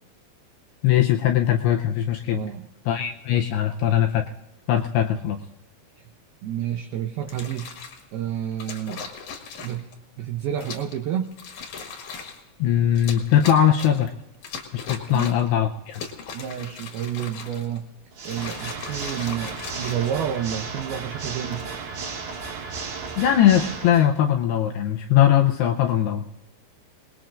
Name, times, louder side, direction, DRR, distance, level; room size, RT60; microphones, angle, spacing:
voice 1, 0.8-2.4 2.9-4.3 4.7-5.4 12.6-14.1 14.7-16.0 23.2-26.2, left 10 dB, 80° left, 3 dB, 2.5 m, -20 dB
voice 2, 2.3-2.7 6.4-7.7 8.1-9.0 9.6-9.9 10.2-11.3 15.1-15.3 16.3-17.9 18.2-21.7, right 10 dB, 80° right, 5 dB, 2.2 m, -29 dB
sound 1, 7.2-8.0 8.6-9.9 10.6-11.0 11.3-12.4 12.9-14.1 14.4-15.5 15.9-17.8 18.2-20.6 21.3-21.7, left 5 dB, 55° left, 2.5 m, -38 dB
Water / Mechanisms, 18.1-24.1, right 5 dB, 55° right, 3.4 m, -34 dB
28.5 x 20.0 x 2.5 m, 0.89 s
omnidirectional pair, 5.4 m